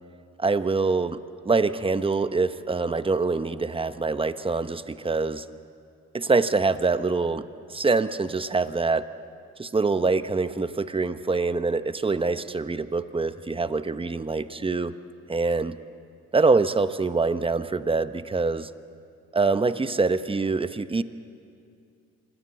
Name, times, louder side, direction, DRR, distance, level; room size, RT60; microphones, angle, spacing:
voice 1, 0.4-1.2 1.4-5.4 6.1-9.1 9.6-14.9 15.3-15.8 16.3-18.7 19.3-21.0, right 3 dB, 20° right, 12 dB, 0.9 m, -25 dB
26.0 x 18.5 x 8.5 m, 2.5 s
cardioid pair, 90°, 30 cm